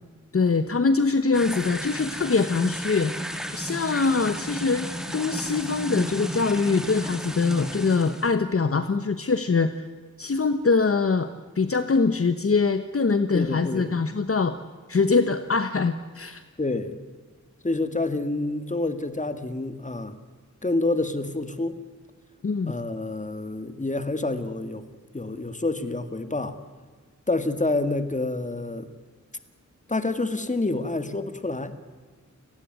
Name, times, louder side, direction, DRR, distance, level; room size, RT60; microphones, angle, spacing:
voice 1, 0.3-3.1 3.5-9.8 10.2-11.3 11.5-14.6 14.9-16.4 22.4-22.7, left 4 dB, 50° left, 10 dB, 1.1 m, -23 dB
sound 1, 1.3-8.3, equal, ahead, 2.6 m, -34 dB
voice 2, 13.3-14.0 16.6-17.0 17.6-20.2 20.6-21.8 22.7-24.8 25.1-26.6 27.3-28.9 29.9-31.7, left 2 dB, 25° left, 10 dB, 2.0 m, -28 dB
29.0 x 18.5 x 9.4 m, 1.5 s
wide cardioid pair, 110°, 30 cm